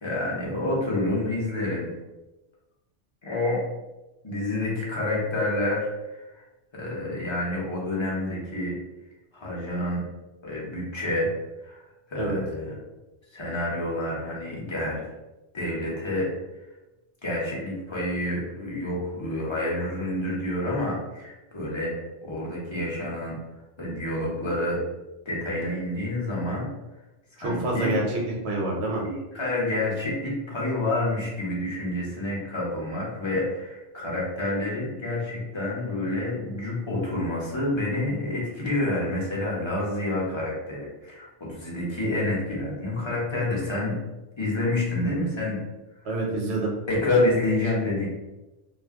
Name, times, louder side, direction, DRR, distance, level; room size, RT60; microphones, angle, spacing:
voice 1, 0.0-1.9 3.2-3.6 4.2-6.4 6.7-8.8 9.3-10.0 10.4-11.3 11.6-12.7 13.3-15.0 15.5-16.3 17.2-22.0 22.2-23.4 23.8-24.8 25.2-26.7 27.3-27.9 29.0-44.0 44.4-45.6 46.9-48.1, left 1 dB, 25° left, -5 dB, 0.7 m, -28 dB
voice 2, 27.4-29.0 46.0-46.7, right 2 dB, 60° right, -2 dB, 1.0 m, -27 dB
2.4 x 2.1 x 3.5 m, 1.0 s
omnidirectional pair, 1.4 m